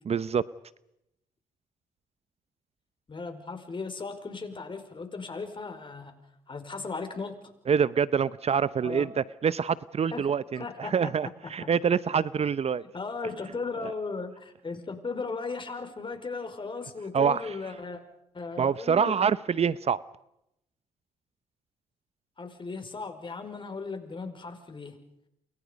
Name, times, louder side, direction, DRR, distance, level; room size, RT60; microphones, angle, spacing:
voice 1, 0.1-0.4 7.7-12.8 13.8-13.9 17.1-17.6 18.6-20.0, right 7 dB, 45° right, 17 dB, 0.8 m, -26 dB
voice 2, 3.1-6.1 6.5-7.4 8.8-9.1 10.1-10.3 10.6-11.0 11.6-11.7 12.9-18.0 18.3-19.1 22.4-25.0, left 4 dB, 35° left, 7 dB, 5.3 m, -36 dB
29.5 x 24.5 x 5.3 m, 0.82 s
supercardioid pair, 60°, 14 cm